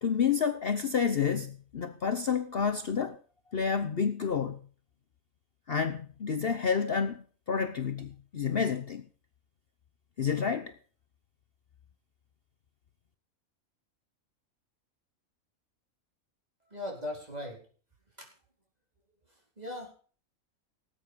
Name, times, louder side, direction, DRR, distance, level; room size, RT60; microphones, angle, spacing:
voice 1, 0.0-3.2 3.5-4.6 5.7-9.1 10.2-10.7, left 6 dB, 50° left, 1.0 m, -29 dB
voice 2, 16.7-17.7 18.1-18.3 19.3-19.9, left 1 dB, 30° right, 4.7 m, -40 dB
18.5 x 8.8 x 5.1 m
omnidirectional pair, 1.4 m